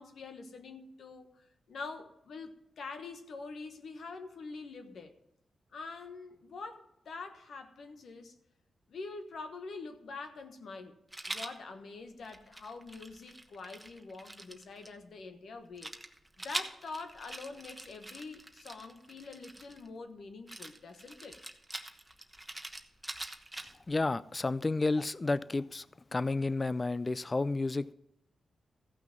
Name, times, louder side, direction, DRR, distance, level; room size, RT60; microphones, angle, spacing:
voice 1, 0.0-5.1 5.7-8.3 8.9-11.0 11.2-15.9 16.4-21.4, left 4 dB, 75° left, 7 dB, 1.3 m, -45 dB
Rattle, 11.1-11.6 12.2-14.9 15.8-19.9 20.5-23.9, right 1 dB, 15° right, 1.1 m, -44 dB
voice 2, 23.9-25.9 26.1-27.9, left 3 dB, 30° left, 18 dB, 0.4 m, -31 dB
14.5 x 5.9 x 6.1 m, 0.83 s
cardioid pair, 70°, 0 cm